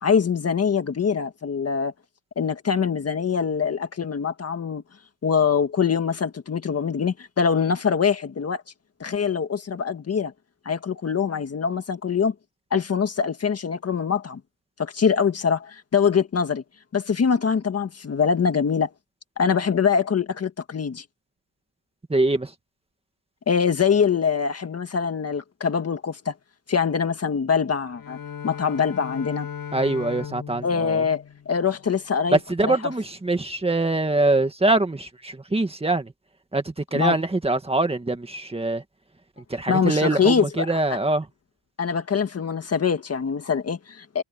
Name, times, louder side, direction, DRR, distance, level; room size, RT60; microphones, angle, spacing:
voice 1, 0.0-1.9 2.3-4.8 5.2-8.6 9.0-10.3 10.6-12.3 12.7-14.4 14.8-16.6 16.9-18.9 19.4-21.0 23.5-26.3 26.7-28.2 28.4-29.5 30.6-32.8 36.9-37.2 39.7-40.8 41.8-44.2, left 6 dB, 35° left, 1.7 m, -23 dB
voice 2, 22.1-22.5 29.7-31.0 32.3-36.1 36.5-38.8 39.5-41.3, right 2 dB, 15° right, 2.0 m, -23 dB
Bowed string instrument, 27.8-32.0, left 8 dB, 50° left, 7.5 m, -37 dB
cardioid pair, 155°, 45 cm